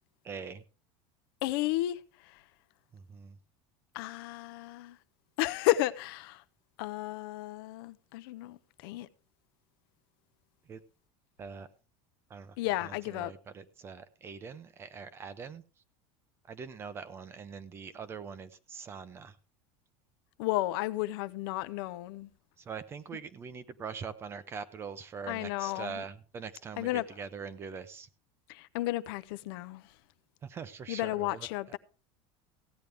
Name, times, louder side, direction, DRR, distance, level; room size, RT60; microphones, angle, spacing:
voice 1, 0.2-0.6 2.9-3.4 10.7-10.8 11.4-11.7 12.3-12.6 12.8-15.6 16.5-19.4 22.6-28.1 30.4-31.5, right 6 dB, 20° right, 0.6 m, -43 dB
voice 2, 1.4-2.4 3.9-5.0 5.4-6.4 6.8-9.1 12.6-13.3 20.4-22.3 25.3-26.0 26.8-27.0 28.5-29.9 30.9-31.8, left 16 dB, 70° left, 0.7 m, -33 dB
16.0 x 9.2 x 3.4 m
cardioid pair, 175°, 13 cm